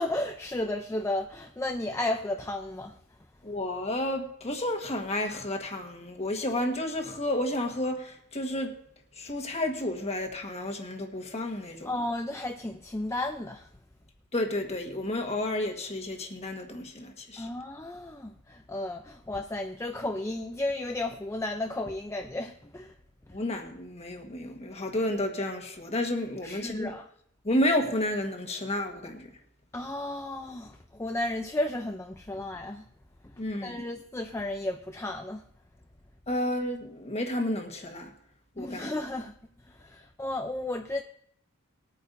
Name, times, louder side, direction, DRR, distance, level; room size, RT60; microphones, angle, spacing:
voice 1, 0.0-2.9 11.8-13.7 17.4-22.9 26.4-27.1 29.7-32.8 33.6-35.4 38.6-39.3 39.7-41.0, left 1 dB, 15° left, 0.5 m, -33 dB
voice 2, 3.4-8.7 9.2-11.9 14.3-17.5 23.3-26.9 27.4-29.3 33.4-33.8 36.3-38.1 38.6-38.9, left 1 dB, 30° left, 1.4 m, -31 dB
20.5 x 9.1 x 2.7 m
head